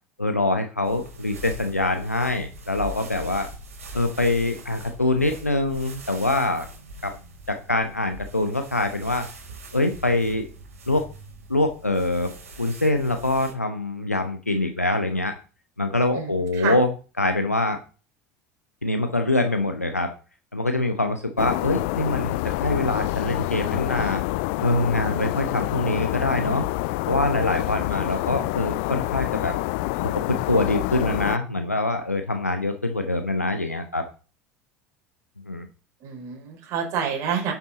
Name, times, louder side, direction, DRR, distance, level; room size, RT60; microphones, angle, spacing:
voice 1, 0.2-3.5 3.9-6.7 7.0-7.1 7.5-9.3 9.7-10.5 10.9-11.1 11.5-15.3 15.8-16.9 17.2-17.8 18.8-20.1 20.5-24.2 24.6-26.6 27.1-29.5 30.3-34.1 35.5-35.7, left 2 dB, 85° left, 6 dB, 0.9 m, -24 dB
sound 1, 0.8-13.5, right 1 dB, 70° right, 3.3 m, -42 dB
voice 2, 16.1-16.8 36.0-37.5, right 7 dB, 45° right, 1 dB, 4.2 m, -28 dB
sound 2, 21.4-31.4, left 20 dB, 55° left, 0.4 m, -27 dB
11.0 x 7.3 x 3.9 m, 0.35 s
figure-of-eight pair, 70°, 8 cm